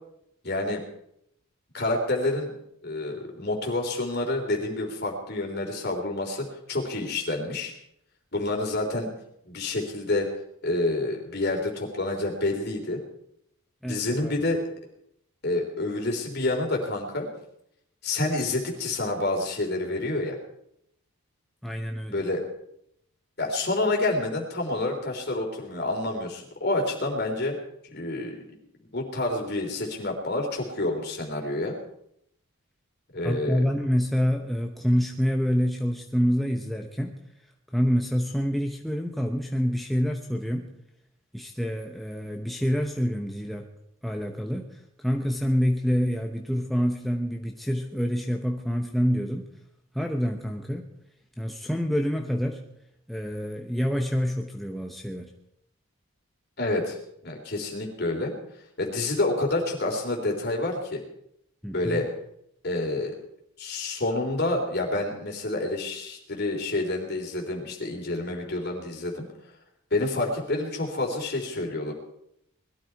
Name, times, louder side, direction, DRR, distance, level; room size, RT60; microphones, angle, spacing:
voice 1, 0.4-0.8 1.7-2.5 2.8-7.7 8.3-9.1 9.5-10.3 10.6-13.0 13.8-14.6 15.4-17.3 18.0-20.4 22.1-22.4 23.4-27.6 27.9-28.6 28.9-31.7 33.1-33.6 56.6-57.0 57.2-58.3 58.8-61.0 61.7-62.1 62.6-63.1 63.6-69.2 69.9-71.9, left 2 dB, 45° left, 1 dB, 3.6 m, -28 dB
voice 2, 13.8-14.3 21.6-22.2 33.2-37.1 37.7-40.7 41.3-43.7 44.0-49.5 49.9-50.9 51.4-52.6 53.1-55.3 61.6-62.1, equal, ahead, 2 dB, 0.9 m, -27 dB
20.5 x 13.0 x 4.7 m, 0.75 s
head